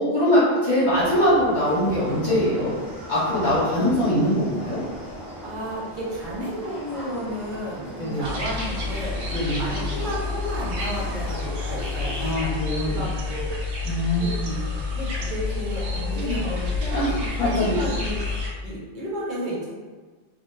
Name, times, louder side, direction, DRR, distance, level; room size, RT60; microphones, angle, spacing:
voice 1, 0.0-2.7 3.1-4.8 8.0-8.3 9.3-9.6 12.2-13.0 13.8-14.5 16.8-17.8, equal, 45° left, -11 dB, 1.2 m, -22 dB
sound 1, 0.9-12.3, equal, ahead, 0.9 m, -38 dB
voice 2, 5.4-13.5 14.2-14.3 14.8-19.7, equal, 50° right, -6 dB, 0.8 m, -33 dB
sound 2, 8.2-18.5, left 3 dB, 85° right, 0.9 m, -29 dB
2.4 x 2.1 x 3.2 m, 1.4 s
omnidirectional pair, 1.1 m